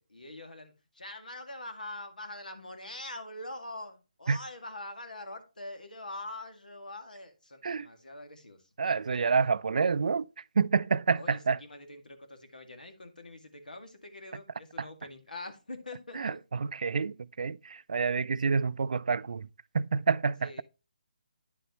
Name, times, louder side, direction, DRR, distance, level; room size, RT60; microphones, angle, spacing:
voice 1, 0.0-8.7 11.2-16.4 20.4-20.6, left 2 dB, 85° left, 2.1 m, -44 dB
voice 2, 8.8-10.3 10.6-11.6 14.8-14.9 16.1-19.5 19.7-20.6, right 5 dB, 65° right, 0.4 m, -28 dB
10.0 x 6.9 x 3.0 m
figure-of-eight pair, 150°, 4 cm